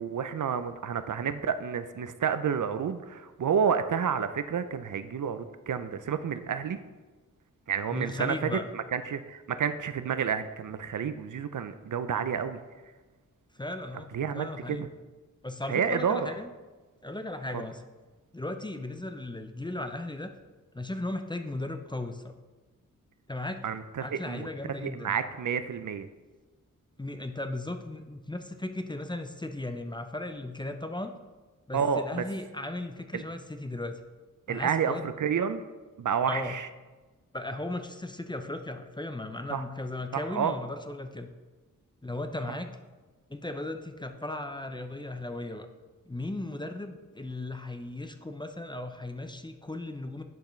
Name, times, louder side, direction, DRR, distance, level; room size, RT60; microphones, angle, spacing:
voice 1, 0.0-6.8 7.7-12.6 14.1-14.9 15.7-16.3 17.5-17.6 23.6-24.5 24.8-26.1 31.7-32.2 33.1-33.2 34.5-35.6 36.0-36.7 39.5-39.6 40.1-40.5, right 7 dB, 65° right, 11 dB, 0.5 m, -30 dB
voice 2, 7.9-8.7 13.5-14.8 15.4-16.5 17.0-17.8 18.3-20.3 20.7-22.3 23.3-23.6 24.0-25.2 27.0-31.1 31.7-34.0 34.5-35.0 36.3-36.5 37.3-41.3 42.0-42.8 43.3-45.7 46.1-50.2, left 2 dB, 15° left, 7 dB, 0.5 m, -36 dB
10.5 x 5.7 x 3.2 m, 1.3 s
wide cardioid pair, 75°, 33 cm